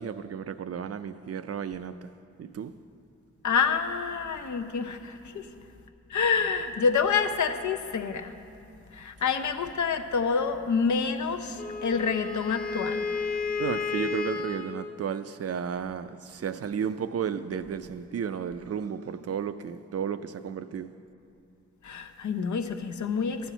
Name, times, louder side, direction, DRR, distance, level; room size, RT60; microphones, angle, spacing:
voice 1, 0.0-2.1 2.4-2.7 5.3-5.4 13.6-20.9, right 7 dB, 55° right, 12 dB, 0.4 m, -33 dB
voice 2, 3.4-5.5 6.1-8.3 8.9-13.1 21.8-23.5, left 5 dB, 80° left, 8 dB, 0.6 m, -27 dB
Wind instrument woodwind instrument, 11.6-14.8, left 5 dB, 35° left, 0.9 m, -32 dB
12.0 x 4.4 x 8.0 m, 2.6 s
cardioid pair, 65°, 29 cm